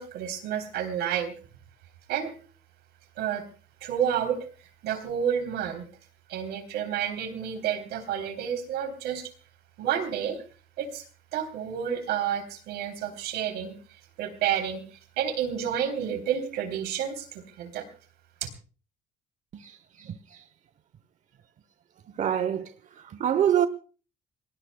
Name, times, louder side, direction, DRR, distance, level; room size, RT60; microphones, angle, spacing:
voice 1, 0.0-1.3 2.1-2.3 3.2-3.4 3.8-5.9 6.3-9.3 9.8-10.4 10.8-11.0 11.3-13.7 14.2-14.8 15.2-17.9, right 9 dB, 80° right, 3.4 m, -30 dB
voice 2, 19.5-20.4 22.2-23.7, right 9 dB, 45° right, 0.8 m, -27 dB
27.5 x 19.5 x 2.2 m
cardioid pair, 110°, 17 cm